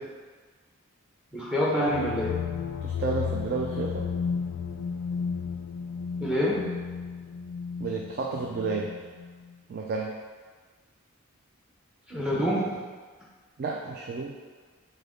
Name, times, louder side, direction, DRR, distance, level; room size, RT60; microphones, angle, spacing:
voice 1, 1.3-2.4 6.2-6.8 12.1-12.9, equal, 5° right, -5 dB, 0.8 m, -27 dB
sound 1, 1.9-9.6, left 6 dB, 80° left, 0.3 m, -33 dB
voice 2, 2.8-4.1 7.8-8.9 9.7-10.2 13.6-14.4, right 4 dB, 45° right, -1 dB, 0.3 m, -31 dB
6.6 x 2.2 x 3.6 m, 1.5 s
head